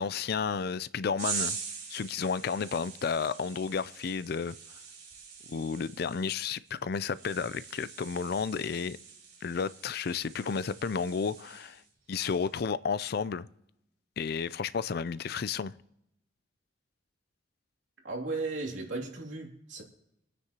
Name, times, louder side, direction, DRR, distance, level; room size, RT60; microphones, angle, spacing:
voice 1, 0.0-1.6 1.9-4.5 5.5-9.0 9.4-11.8 12.1-13.5 14.2-15.7, left 5 dB, 55° left, 0.4 m, -32 dB
sound 1, 1.2-11.9 12.2-12.6, right 6 dB, 55° right, 3.9 m, -43 dB
voice 2, 18.0-19.8, right 3 dB, 85° right, 2.8 m, -35 dB
25.5 x 9.6 x 2.9 m
head